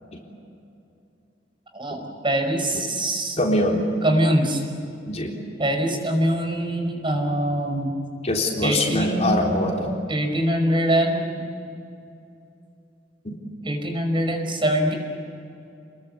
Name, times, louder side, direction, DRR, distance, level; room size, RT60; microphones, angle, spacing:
voice 1, 1.7-3.4 4.0-4.6 5.6-7.9 8.6-9.6 10.1-11.4 13.6-14.9, right 1 dB, 30° right, 3 dB, 5.2 m, -23 dB
voice 2, 3.4-3.8 5.1-5.3 8.2-9.9 13.2-13.4, left 1 dB, 40° left, 0 dB, 3.8 m, -23 dB
29.5 x 22.0 x 8.3 m, 2.6 s
head